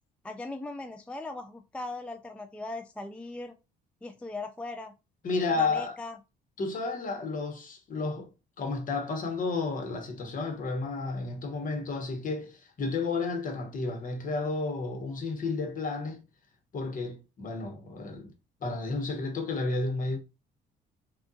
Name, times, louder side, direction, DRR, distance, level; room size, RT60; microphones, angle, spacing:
voice 1, 0.2-3.6 4.0-4.9 5.5-6.2, left 2 dB, 5° left, 0.3 m, -39 dB
voice 2, 5.2-6.0 6.6-8.3 8.6-16.2 16.7-18.3 18.6-20.2, left 3 dB, 50° left, 1.1 m, -32 dB
3.5 x 2.3 x 2.6 m
supercardioid pair, 80°, 18 cm